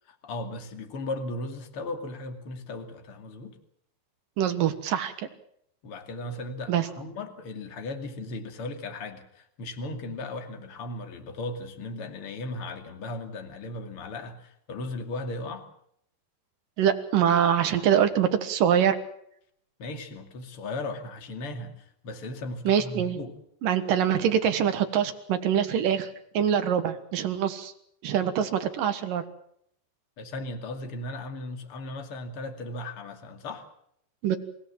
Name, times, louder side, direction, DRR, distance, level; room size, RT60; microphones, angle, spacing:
voice 1, 0.1-3.6 5.8-15.7 19.8-23.4 30.2-33.6, left 2 dB, 40° left, 5 dB, 2.5 m, -37 dB
voice 2, 4.4-5.3 6.7-6.9 16.8-19.0 22.7-23.2 23.6-26.1 26.3-27.7 28.0-29.2 34.2-34.4, right 9 dB, 65° right, 8 dB, 2.4 m, -24 dB
28.5 x 16.5 x 7.5 m, 0.71 s
omnidirectional pair, 5.5 m